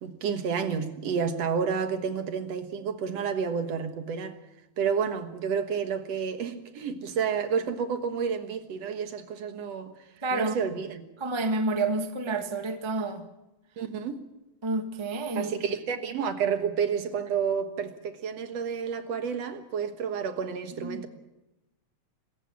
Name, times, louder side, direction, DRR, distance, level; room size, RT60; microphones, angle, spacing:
voice 1, 0.0-4.4 4.8-9.9 10.3-11.0 13.8-14.2 15.3-21.1, right 6 dB, 65° right, 2.4 m, -30 dB
voice 2, 10.2-10.6 11.2-13.2 14.6-15.5 20.8-21.0, right 2 dB, 15° right, 0.9 m, -29 dB
25.0 x 15.0 x 7.2 m
omnidirectional pair, 3.3 m